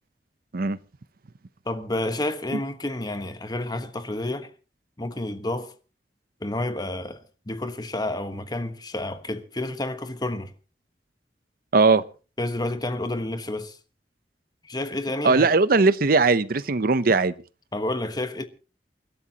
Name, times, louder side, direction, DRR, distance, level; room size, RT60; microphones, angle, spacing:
voice 1, 1.6-4.5 5.0-5.7 6.4-10.5 12.4-13.8 14.6-15.5 17.7-18.5, left 1 dB, 25° left, 1.2 m, -30 dB
voice 2, 11.7-12.0 15.2-17.3, right 3 dB, 55° right, 0.7 m, -19 dB
29.0 x 12.5 x 2.9 m
head